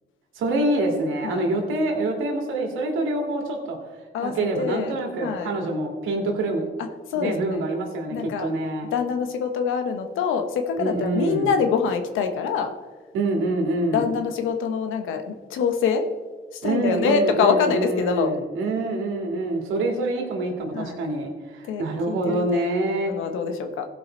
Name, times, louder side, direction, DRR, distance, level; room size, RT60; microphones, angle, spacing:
voice 1, 0.4-3.8 4.2-6.6 7.1-8.9 10.8-11.5 13.1-14.1 16.6-23.1, right 2 dB, 90° right, 1 dB, 2.2 m, -26 dB
voice 2, 4.1-5.0 5.2-5.5 7.1-7.6 8.1-8.5 8.9-12.7 13.9-16.0 16.6-18.4 20.7-21.0 21.7-22.7 23.0-23.9, left 6 dB, 85° left, 6 dB, 1.2 m, -25 dB
16.0 x 5.5 x 4.5 m, 1.4 s
cardioid pair, 90°, 20 cm